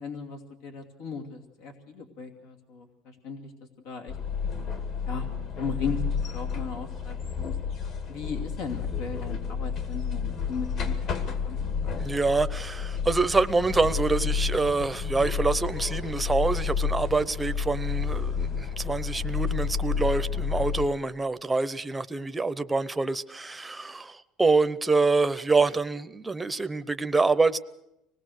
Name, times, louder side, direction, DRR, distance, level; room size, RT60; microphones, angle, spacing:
voice 1, 0.0-3.5 3.8-4.2 5.1-5.3 5.5-6.0 6.3-7.6 8.1-12.0, left 5 dB, 85° left, 2.7 m, -37 dB
sound 1, 4.1-20.9, left 6 dB, 50° left, 2.3 m, -30 dB
voice 2, 12.0-27.6, right 3 dB, 10° right, 0.7 m, -26 dB
25.5 x 19.0 x 6.5 m
cardioid pair, 140°, 0 cm